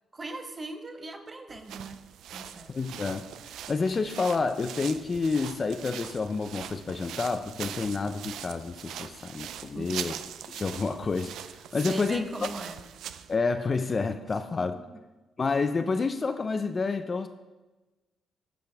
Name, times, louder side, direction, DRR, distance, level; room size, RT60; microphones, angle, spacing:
voice 1, 0.1-2.0 2.3-2.8 9.7-10.1 11.8-12.8 14.7-15.0, right 2 dB, 30° right, 5 dB, 1.0 m, -40 dB
sound 1, 1.5-13.4, right 10 dB, 80° right, 0.4 m, -41 dB
voice 2, 2.7-3.3 3.7-10.1 10.5-12.3 13.3-14.8 15.4-17.3, left 4 dB, 35° left, 10 dB, 0.4 m, -29 dB
13.5 x 5.1 x 3.4 m, 1.1 s
cardioid pair, 90°, 0 cm